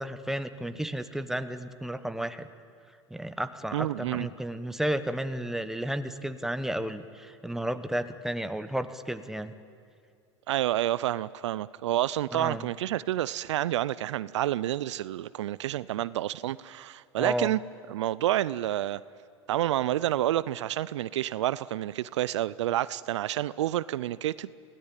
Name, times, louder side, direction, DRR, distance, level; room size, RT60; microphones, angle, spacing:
voice 1, 0.0-2.5 3.1-9.5 12.3-12.7 17.2-17.5, right 1 dB, 5° right, 10 dB, 1.2 m, -32 dB
voice 2, 3.7-4.3 10.5-17.6 17.9-19.0 19.5-24.5, right 13 dB, 75° right, 19 dB, 0.5 m, -29 dB
23.0 x 17.0 x 9.0 m, 2.3 s
hypercardioid pair, 90°, 15 cm